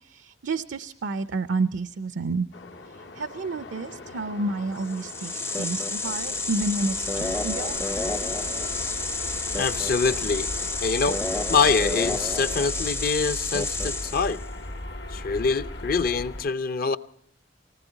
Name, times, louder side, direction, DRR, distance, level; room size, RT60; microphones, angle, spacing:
voice 1, 0.1-2.5 3.1-5.3 5.6-7.8, right 3 dB, 80° right, 12 dB, 0.6 m, -29 dB
sound 1, 2.5-12.7, left 3 dB, 85° left, 1.7 m, -43 dB
sound 2, 4.8-14.4, left 3 dB, 15° left, 0.5 m, -30 dB
sound 3, 5.8-16.4, left 1 dB, 70° left, 1.3 m, -37 dB
voice 2, 9.6-11.2 11.5-14.4 15.1-17.0, left 4 dB, 55° left, 12 dB, 0.6 m, -25 dB
19.5 x 18.5 x 4.0 m, 0.71 s
head